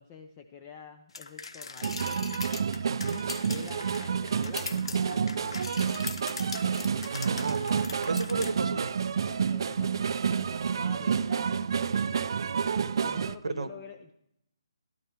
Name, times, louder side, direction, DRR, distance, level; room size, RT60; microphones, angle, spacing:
voice 1, 0.0-2.2 3.5-5.7 6.8-7.5 8.4-8.5 9.3-11.7 13.0-14.1, left 6 dB, 20° left, 5 dB, 0.6 m, -48 dB
sound 1, 1.1-8.5, left 4 dB, 70° left, 1.2 m, -40 dB
sound 2, 1.8-13.4, right 6 dB, 50° right, 0.5 m, -29 dB
voice 2, 2.9-3.3 7.1-8.9 13.4-13.7, right 3 dB, 80° right, 13 dB, 1.2 m, -33 dB
13.0 x 12.0 x 4.5 m, 0.76 s
hypercardioid pair, 165°, 3 cm